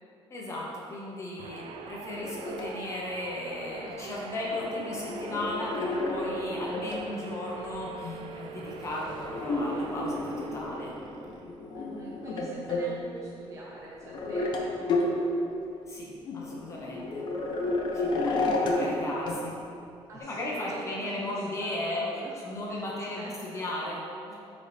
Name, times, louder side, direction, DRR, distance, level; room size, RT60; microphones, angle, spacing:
voice 1, 0.3-10.9 15.9-17.2 17.9-19.5 20.2-22.1 22.4-24.4, left 1 dB, 30° left, -4 dB, 1.0 m, -36 dB
sound 1, 1.4-11.7, right 6 dB, 60° right, 0.4 m, -44 dB
sound 2, 2.1-2.7 4.4-7.1 7.6-12.9 13.3-13.4 14.0-14.6 14.9-15.1 16.0-16.1 16.2-19.0 19.3-19.4 20.1-20.2, left 2 dB, 45° left, 0.7 m, -32 dB
voice 2, 11.7-15.4 20.1-23.7, right 1 dB, 30° right, -5 dB, 0.8 m, -45 dB
9.4 x 4.2 x 3.4 m, 2.7 s
cardioid pair, 170°, 11 cm